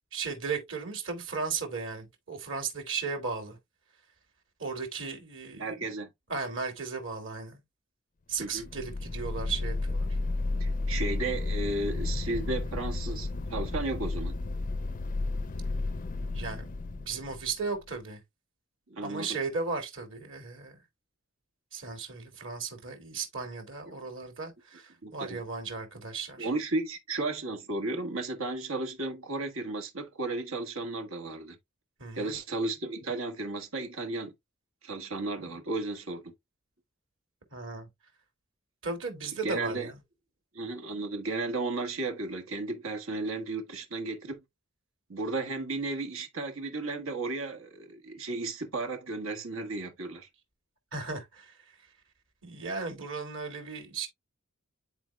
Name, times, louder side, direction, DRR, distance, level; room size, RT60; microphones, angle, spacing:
voice 1, 0.1-3.6 4.6-5.7 6.3-7.6 8.3-10.2 16.2-18.2 19.0-20.8 21.7-26.5 32.0-32.4 37.5-37.9 38.8-40.0 50.9-51.6 52.4-54.1, right 4 dB, 60° right, 2.6 m, -36 dB
voice 2, 5.5-6.1 8.4-8.7 10.6-14.4 18.9-19.4 23.9-24.0 25.0-25.4 26.4-31.6 32.1-34.3 34.8-36.3 39.4-39.9 40.5-44.4 45.1-50.3, right 2 dB, 75° right, 1.4 m, -34 dB
sound 1, 8.5-17.8, left 2 dB, 40° left, 0.5 m, -32 dB
10.5 x 4.3 x 2.3 m
head